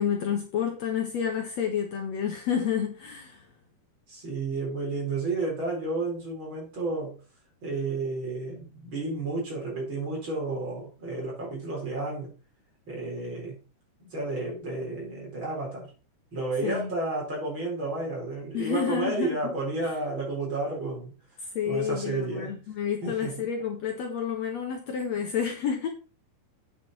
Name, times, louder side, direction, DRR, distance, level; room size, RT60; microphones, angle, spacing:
voice 1, 0.0-3.5 16.6-16.9 18.5-19.5 19.8-20.0 21.5-25.9, left 8 dB, 60° left, 3 dB, 2.1 m, -30 dB
voice 2, 4.1-7.2 7.6-12.3 12.9-13.6 14.0-15.9 16.3-21.1 21.7-22.5 23.0-23.4, right 3 dB, 35° right, -3 dB, 5.1 m, -31 dB
9.1 x 6.9 x 4.1 m, 0.35 s
omnidirectional pair, 3.9 m